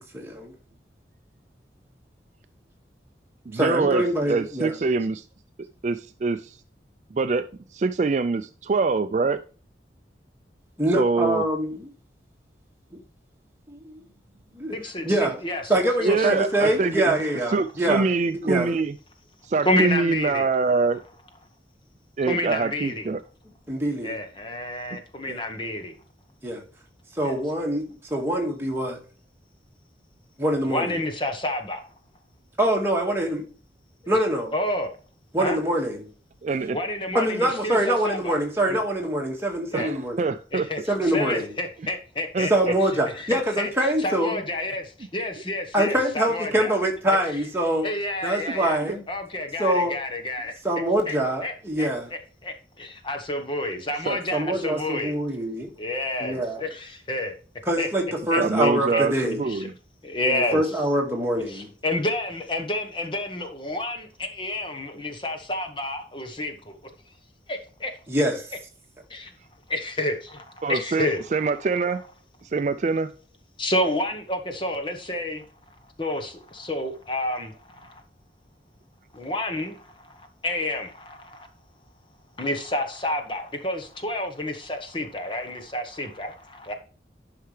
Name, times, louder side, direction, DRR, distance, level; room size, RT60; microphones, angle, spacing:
voice 1, 0.1-0.5 3.5-4.8 10.8-11.9 13.7-14.0 14.5-14.8 15.0-15.4 15.7-18.1 18.4-18.7 23.7-24.2 25.3-25.4 26.4-26.6 27.2-29.0 30.4-30.9 32.6-33.4 34.1-34.5 35.3-36.1 37.1-40.3 40.9-41.5 42.5-44.4 45.7-47.9 48.2-49.0 49.6-50.0 50.6-52.1 54.3-55.7 56.2-56.6 57.7-59.4 60.3-61.7 68.1-68.5, right 1 dB, 15° right, 1.9 m, -24 dB
voice 2, 3.5-5.2 5.8-6.6 7.1-7.5 7.7-9.4 11.0-11.4 16.0-17.1 17.5-19.0 19.4-21.0 22.2-23.2 36.4-36.8 39.7-40.7 42.3-42.7 48.5-48.6 54.1-54.2 58.4-59.7 70.6-72.0 72.4-73.1, right 4 dB, 40° right, 0.3 m, -24 dB
voice 3, 14.7-15.7 16.0-16.3 16.6-16.8 19.6-20.5 22.3-23.1 24.0-25.9 27.2-27.4 30.7-31.8 34.0-34.2 34.5-34.9 35.4-35.6 36.7-38.3 38.7-38.8 39.7-39.9 40.5-42.7 43.1-43.7 44.0-46.7 47.1-47.2 47.8-48.8 49.1-50.5 51.1-51.2 51.4-55.1 55.8-57.3 57.8-57.9 58.3-59.0 59.5-59.7 60.0-60.7 61.5-66.8 67.5-67.9 69.1-69.3 69.7-71.5 73.6-75.4 76.0-78.0 79.1-81.5 82.4-86.7, left 1 dB, 25° left, 1.1 m, -30 dB
11.5 x 5.7 x 3.3 m
head